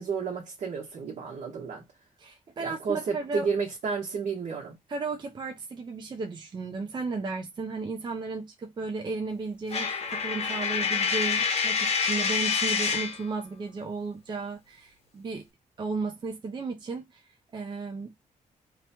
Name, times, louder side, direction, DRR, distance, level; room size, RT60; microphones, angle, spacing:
voice 1, 0.0-1.8 2.6-4.8, right 5 dB, 65° right, 1.1 m, -31 dB
voice 2, 2.2-3.5 4.9-15.5 15.8-17.2 17.5-18.1, right 4 dB, 35° right, 0.5 m, -34 dB
Coin (dropping), 9.7-13.2, left 6 dB, 50° left, 0.8 m, -27 dB
2.9 x 2.2 x 2.8 m
cardioid pair, 100°, 14 cm